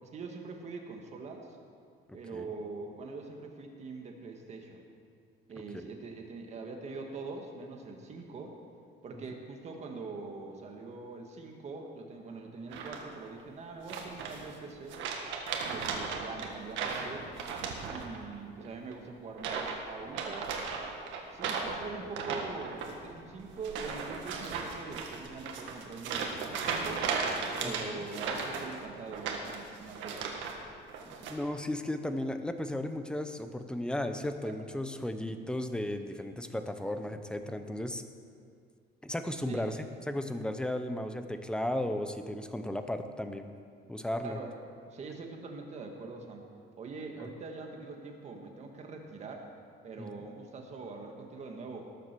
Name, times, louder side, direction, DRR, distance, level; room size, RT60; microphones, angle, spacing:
voice 1, 0.0-1.6 2.1-4.8 5.5-8.6 9.0-15.0 15.6-17.3 17.9-20.5 21.3-27.1 27.6-30.4 34.4-34.5 39.5-39.7 44.2-44.5 44.9-46.4 46.8-49.5 49.8-51.9, right 4 dB, 35° right, 2 dB, 1.7 m, -43 dB
voice 2, 2.1-2.5 5.7-5.9 27.6-28.0 31.0-38.0 39.0-39.8 40.1-43.5 43.9-44.4 47.2-47.3 50.0-50.1, left 1 dB, 5° left, 8 dB, 0.7 m, -35 dB
sound 1, 12.7-13.3 13.9-14.6 14.9-18.4 18.6-18.9 19.3-19.8 20.1-30.6 30.9-31.3, right 5 dB, 85° right, 1.8 m, -36 dB
18.5 x 7.7 x 6.8 m, 2.3 s
cardioid pair, 165°, 19 cm